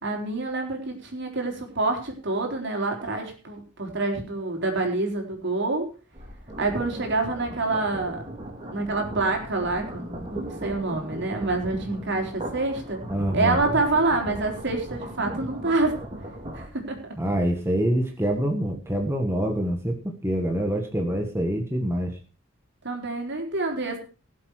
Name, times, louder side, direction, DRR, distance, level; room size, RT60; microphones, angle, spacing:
voice 1, 0.0-5.9 6.6-8.2 8.7-13.0 13.3-16.0 16.5-17.0 22.8-24.0, right 3 dB, 60° right, 2 dB, 4.0 m, -27 dB
sound 1, 6.1-16.7, right 1 dB, 30° right, 3.9 m, -37 dB
voice 2, 13.1-13.6 17.2-22.2, right 1 dB, 15° right, 2 dB, 1.5 m, -25 dB
18.5 x 7.7 x 4.8 m, 0.36 s
head